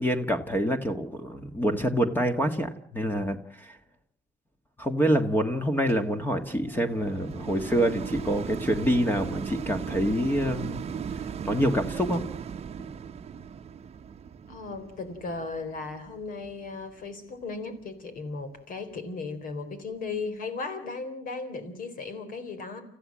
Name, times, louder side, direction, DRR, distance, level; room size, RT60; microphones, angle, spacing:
voice 1, 0.0-3.8 4.8-10.8 11.4-12.2, equal, 10° left, 6 dB, 1.6 m, -26 dB
sound 1, 5.9-17.2 17.8-17.9, right 7 dB, 40° right, 1.0 m, -37 dB
voice 2, 14.5-22.8, left 4 dB, 55° left, 10 dB, 4.1 m, -36 dB
29.5 x 15.0 x 7.5 m, 0.63 s
cardioid pair, 110°, 17 cm